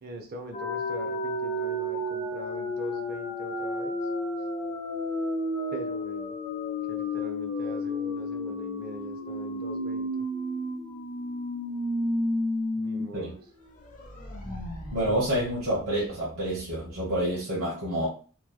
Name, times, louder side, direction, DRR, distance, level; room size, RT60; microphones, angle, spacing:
voice 1, 0.0-4.0 5.7-6.3 6.9-10.3 12.7-13.4, right 1 dB, 45° right, 3 dB, 0.5 m, -42 dB
sound 1, 0.5-13.0 13.4-13.5 13.8-16.5, left 1 dB, 40° left, 0.8 m, -32 dB
voice 2, 14.9-18.1, right 1 dB, 80° right, -6 dB, 1.1 m, -28 dB
3.0 x 2.3 x 2.2 m, 0.39 s
head